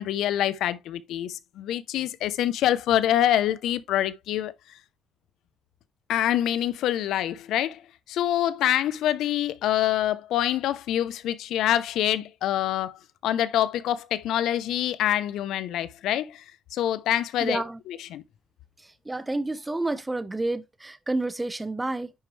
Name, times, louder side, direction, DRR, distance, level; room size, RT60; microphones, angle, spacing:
voice 1, 0.0-4.5 6.1-7.8 8.1-16.4 16.7-17.6 18.1-18.2, left 12 dB, 85° left, 0.6 m, -25 dB
voice 2, 17.4-17.8 18.8-22.1, right 2 dB, 15° right, 0.8 m, -30 dB
10.5 x 4.5 x 3.1 m
cardioid pair, 90°, 0 cm